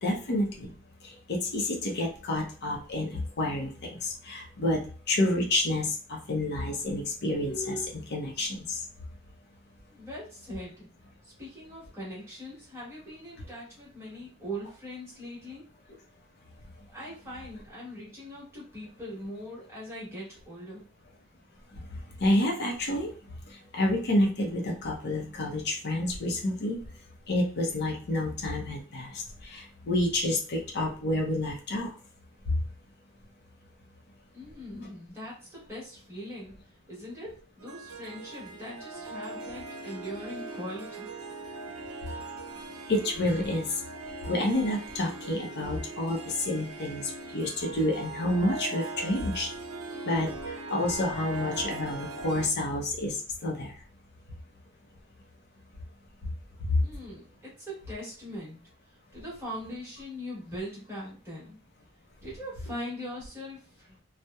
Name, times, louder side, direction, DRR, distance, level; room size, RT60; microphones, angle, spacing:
voice 1, 0.0-0.7 1.0-8.8 21.7-23.2 23.5-27.0 27.3-31.9 32.5-32.6 42.9-43.8 44.3-49.5 50.1-53.8 56.2-56.3 56.7-56.8, left 1 dB, 50° left, -1 dB, 0.6 m, -29 dB
voice 2, 9.9-10.9 11.2-15.6 16.9-20.8 34.3-36.5 36.9-41.1 56.8-58.6 58.9-61.6 62.2-64.0, equal, 10° right, -7 dB, 1.1 m, -41 dB
Harp, 37.6-52.5, right 3 dB, 75° right, 0.5 m, -40 dB
2.8 x 2.0 x 2.2 m, 0.38 s
head